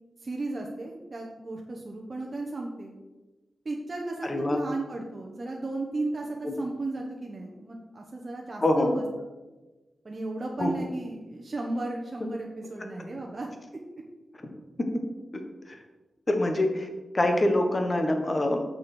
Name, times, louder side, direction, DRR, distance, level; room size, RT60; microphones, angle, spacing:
voice 1, 0.2-2.9 3.6-9.0 10.0-13.5, right 2 dB, 40° right, 0 dB, 1.0 m, -35 dB
voice 2, 4.2-4.6 6.4-6.5 8.6-8.9 10.6-10.7 15.3-15.4 15.7-15.8 16.3-16.9 17.1-18.6, left 1 dB, 30° left, 4 dB, 1.3 m, -25 dB
7.0 x 6.2 x 6.2 m, 1.2 s
wide cardioid pair, 105°, 0 cm